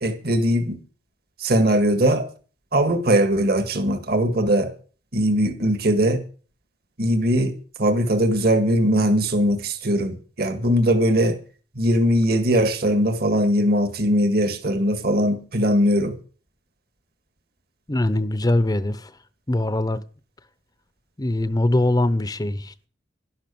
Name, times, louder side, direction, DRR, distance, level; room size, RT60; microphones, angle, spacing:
voice 1, 0.0-0.8 1.4-2.3 2.7-4.7 5.1-6.2 7.0-11.4 11.8-16.2, equal, 55° right, 1.9 m, -20 dB
voice 2, 17.9-19.1 19.5-20.0 21.2-22.9, left 1 dB, 20° left, 0.7 m, -22 dB
12.0 x 11.5 x 7.0 m
head